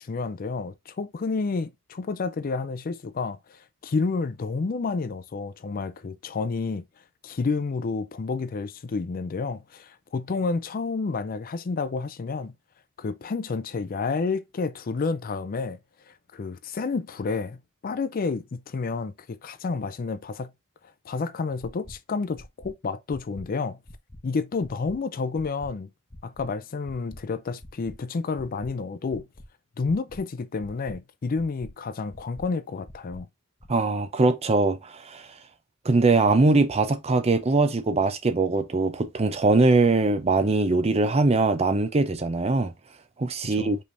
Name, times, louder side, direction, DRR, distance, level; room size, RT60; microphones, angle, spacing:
voice 1, 0.0-6.8 7.2-12.5 13.0-15.8 16.1-20.5 21.1-23.8 24.2-25.9 26.2-29.3 29.8-33.3 43.6-43.8, left 4 dB, 45° left, 0.4 m, -30 dB
sound 1, 21.6-21.9 22.4-22.7 23.1-23.4 23.9-24.2 24.6-25.0 25.4-25.7 26.1-26.5 26.9-27.2 27.6-28.0 28.4-28.7 29.1-29.5 29.9-30.2 30.6-31.0 31.4-31.7 32.1-32.4 32.9-33.2 33.6-33.7, left 1 dB, 25° left, 1.0 m, -45 dB
voice 2, 33.7-35.2 35.8-42.7 43.2-43.8, right 3 dB, 30° right, 0.6 m, -22 dB
5.2 x 3.4 x 2.5 m
head